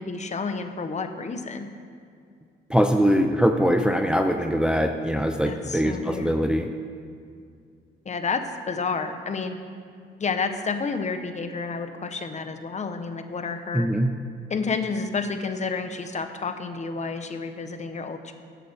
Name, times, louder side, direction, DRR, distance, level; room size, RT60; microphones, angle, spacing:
voice 1, 0.0-1.8 5.5-6.3 8.0-9.6 10.2-13.9 14.5-18.3, left 4 dB, 35° left, 8 dB, 0.9 m, -30 dB
voice 2, 2.7-6.7 13.7-14.1, equal, 5° right, 6 dB, 0.5 m, -22 dB
15.0 x 8.7 x 3.4 m, 2.3 s
cardioid pair, 90°, 20 cm